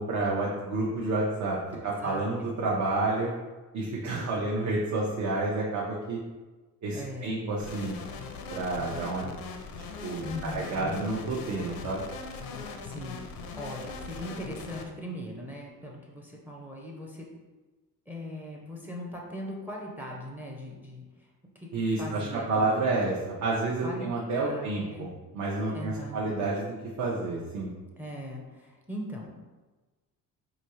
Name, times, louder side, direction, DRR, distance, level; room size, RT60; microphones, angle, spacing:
voice 1, 0.0-3.3 3.7-6.2 6.8-8.0 8.5-9.4 10.0-12.0 21.7-25.1 25.3-27.7, right 2 dB, 60° right, -4 dB, 0.8 m, -29 dB
voice 2, 1.7-2.3 4.1-4.5 6.9-7.5 10.2-11.1 12.8-17.3 18.1-21.3 21.5-21.7 22.0-22.7 23.8-24.1 24.4-25.1 25.7-26.2 28.0-29.4, equal, 5° right, -1 dB, 0.5 m, -40 dB
sound 1, 7.6-14.8, left 4 dB, 85° left, 0.6 m, -40 dB
5.0 x 2.7 x 3.0 m, 1.2 s
cardioid pair, 145°, 35 cm